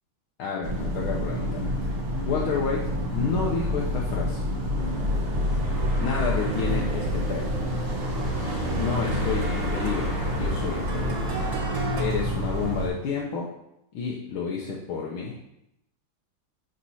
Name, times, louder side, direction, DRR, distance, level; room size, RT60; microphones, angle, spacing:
voice 1, 0.4-2.0 2.2-4.5 6.0-7.5 8.7-11.3 12.0-13.5 13.9-15.4, left 5 dB, 80° left, -3 dB, 1.6 m, -30 dB
sound 1, 0.6-12.9, equal, 30° right, 1.6 m, -28 dB
sound 2, 4.8-12.0, right 3 dB, 85° right, 0.7 m, -42 dB
sound 3, 6.4-12.0, right 3 dB, 55° right, 1.2 m, -37 dB
11.5 x 4.3 x 2.8 m, 0.82 s
omnidirectional pair, 2.3 m